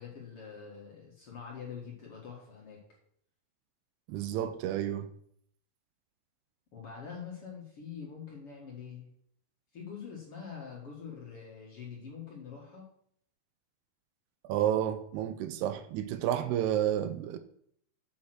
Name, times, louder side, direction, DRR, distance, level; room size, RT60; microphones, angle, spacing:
voice 1, 0.0-2.8 6.7-9.1 9.7-12.8, left 6 dB, 45° left, 2.2 m, -45 dB
voice 2, 4.1-5.1 14.5-17.4, right 11 dB, 80° right, 2.6 m, -30 dB
7.8 x 7.1 x 6.1 m
omnidirectional pair, 4.8 m